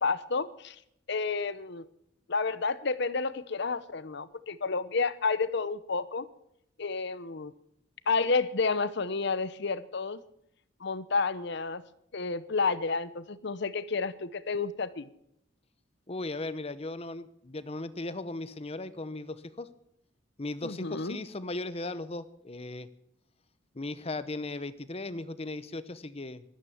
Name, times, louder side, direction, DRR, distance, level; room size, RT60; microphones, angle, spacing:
voice 1, 0.0-0.8 1.1-1.9 2.3-6.3 6.8-7.5 8.1-10.2 10.8-11.8 12.1-15.1 20.6-21.2, left 4 dB, 60° left, 15 dB, 0.9 m, -30 dB
voice 2, 16.1-19.7 20.4-22.9 23.7-26.4, left 2 dB, 30° left, 14 dB, 0.9 m, -37 dB
13.5 x 12.5 x 7.2 m, 0.74 s
head